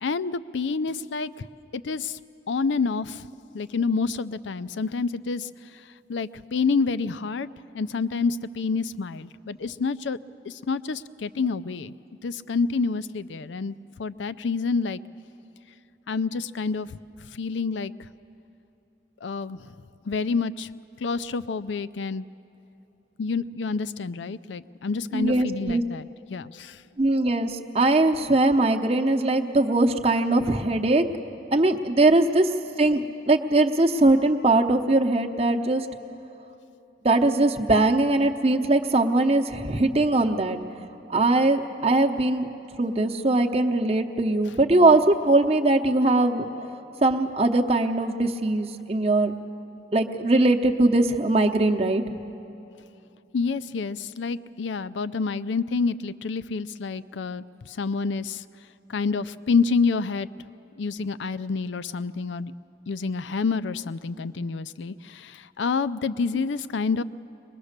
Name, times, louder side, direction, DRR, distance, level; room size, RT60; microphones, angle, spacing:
voice 1, 0.0-1.5 1.7-2.2 2.5-3.2 3.5-5.5 6.1-7.5 7.7-10.2 10.4-11.9 12.2-15.0 16.1-17.0 17.3-17.9 19.2-19.7 20.1-20.7 21.0-22.2 23.2-26.8 53.3-58.4 58.9-60.3 60.8-62.5 62.9-67.0, left 4 dB, 80° left, 15 dB, 0.5 m, -28 dB
voice 2, 25.1-25.8 27.0-31.0 31.5-32.5 32.8-35.9 37.0-40.6 41.1-42.5 42.8-46.5 47.0-49.3 49.9-52.0, right 2 dB, 35° right, 4 dB, 0.8 m, -21 dB
22.5 x 21.0 x 6.6 m, 2.9 s
head